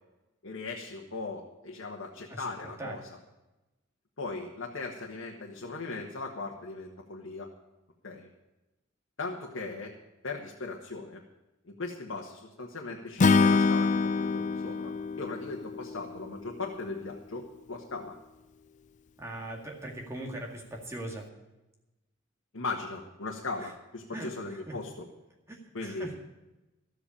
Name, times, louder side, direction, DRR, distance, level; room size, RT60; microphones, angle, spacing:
voice 1, 0.4-3.0 4.2-7.5 8.0-8.3 9.2-9.9 10.2-11.2 11.7-14.9 15.2-18.1 22.5-25.0 25.7-26.1, left 3 dB, 80° left, 0 dB, 1.4 m, -38 dB
Acoustic guitar / Strum, 13.2-16.5, left 4 dB, 35° left, 0.4 m, -25 dB
voice 2, 19.2-21.3 23.6-23.7 24.1-24.8 25.5-26.1, right 1 dB, 15° right, -1 dB, 2.0 m, -40 dB
13.0 x 8.0 x 8.5 m, 1.0 s
head